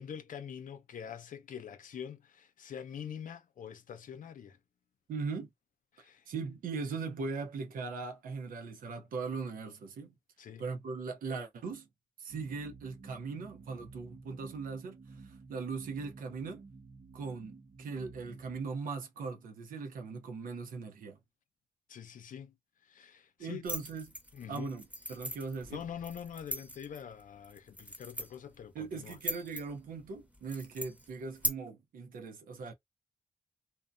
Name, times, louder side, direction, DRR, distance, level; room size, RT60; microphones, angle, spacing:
voice 1, 0.0-4.6 5.9-6.3 10.4-10.7 21.9-22.6 22.8-23.6 24.3-24.7 25.7-29.2, left 8 dB, 75° left, 0.5 m, -45 dB
voice 2, 5.1-5.5 6.3-10.2 10.6-11.9 12.2-16.7 17.1-21.2 23.4-24.1 24.5-25.8 28.7-32.7, right 4 dB, 90° right, 0.7 m, -39 dB
sound 1, 12.3-18.7, right 4 dB, 55° right, 0.7 m, -52 dB
sound 2, 23.7-31.5, equal, 10° right, 1.0 m, -41 dB
2.7 x 2.1 x 2.5 m
supercardioid pair, 45°, 14 cm